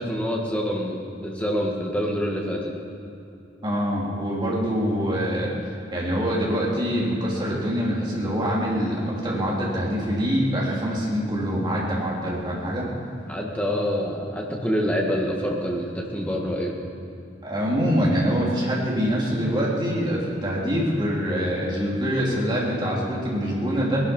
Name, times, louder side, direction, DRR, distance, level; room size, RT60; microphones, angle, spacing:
voice 1, 0.0-2.7 13.3-16.7, equal, 5° left, -1 dB, 1.7 m, -26 dB
voice 2, 3.6-5.5 5.9-12.9 17.4-24.0, equal, 25° right, -5 dB, 3.4 m, -24 dB
19.0 x 12.0 x 5.5 m, 2.7 s
head